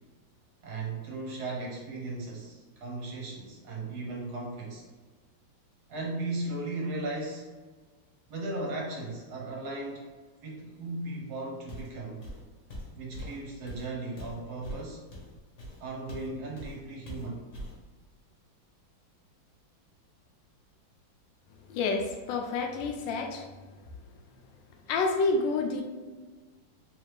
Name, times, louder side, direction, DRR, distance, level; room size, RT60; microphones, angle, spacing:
voice 1, 0.6-4.8 5.9-7.5 8.3-10.0 10.4-12.3 13.0-15.0 15.8-17.5, right 2 dB, 60° right, -1 dB, 1.2 m, -36 dB
Walk footsteps, 11.7-12.0 12.2-16.3 16.6-16.8 17.1-17.8, equal, 50° left, 1.1 m, -42 dB
voice 2, 21.7-23.5 24.9-25.8, left 3 dB, 80° left, 2 dB, 1.3 m, -28 dB
3.3 x 3.2 x 3.1 m, 1.4 s
omnidirectional pair, 2.1 m